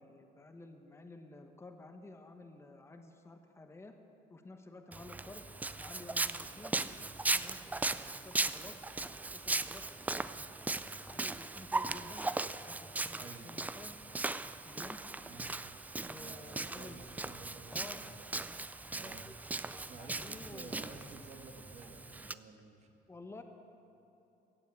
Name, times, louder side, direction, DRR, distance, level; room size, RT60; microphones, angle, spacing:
voice 1, 0.0-3.9 4.3-5.4 5.7-6.8 7.2-7.6 8.0-10.5 11.1-14.0 14.6-15.0 16.0-17.0 17.7-18.0 18.9-19.1 19.6-20.8 23.1-23.4, left 2 dB, 15° left, 5 dB, 1.0 m, -52 dB
Walk footsteps, 4.9-22.3, right 2 dB, 10° right, 0.3 m, -38 dB
voice 2, 13.2-13.6 15.3-15.6 16.2-18.3 18.9-19.2 19.9-22.9, right 3 dB, 40° right, 4 dB, 1.6 m, -52 dB
16.0 x 7.3 x 8.3 m, 2.9 s
cardioid pair, 110°, 17 cm